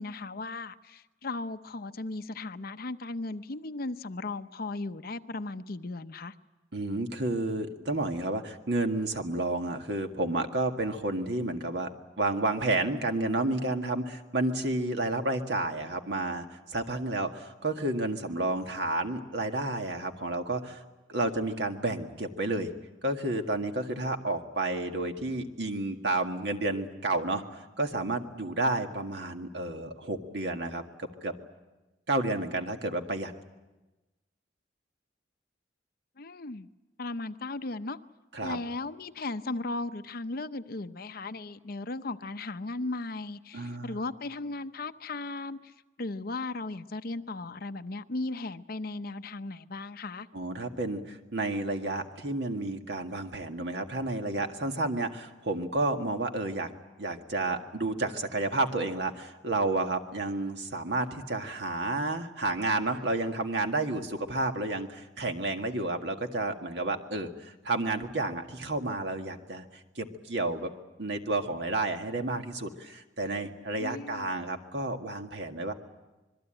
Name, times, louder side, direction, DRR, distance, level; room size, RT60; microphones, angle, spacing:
voice 1, 0.0-6.3 36.2-36.7 37.0-38.0 38.4-45.7 46.0-50.3 73.8-74.3, left 2 dB, 55° left, 10 dB, 0.8 m, -36 dB
voice 2, 6.7-11.9 12.2-20.8 21.1-22.7 23.0-31.3 32.1-33.3 38.3-38.6 43.5-44.0 50.3-56.7 57.0-69.7 70.0-70.7 71.0-75.7, right 2 dB, 65° right, 5 dB, 1.9 m, -31 dB
26.0 x 21.5 x 9.0 m, 1.1 s
head